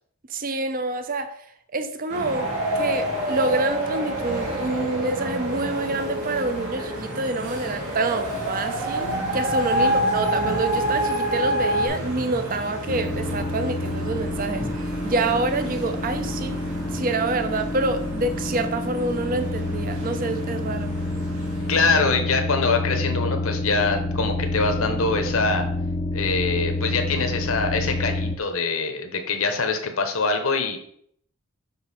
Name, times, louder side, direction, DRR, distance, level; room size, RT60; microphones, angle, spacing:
voice 1, 0.3-1.3 1.7-2.5 2.7-9.1 9.3-14.7 15.0-16.6 16.9-20.9, right 2 dB, 40° right, 0.6 m, -27 dB
sound 1, 2.1-22.0, equal, 85° right, 2.3 m, -35 dB
sound 2, 2.3-11.9, right 1 dB, 70° right, 1.6 m, -27 dB
sound 3, 12.9-28.4, left 2 dB, 30° left, 0.6 m, -28 dB
voice 2, 21.7-25.7 26.1-30.8, left 4 dB, 70° left, 1.0 m, -24 dB
5.5 x 5.5 x 4.2 m
head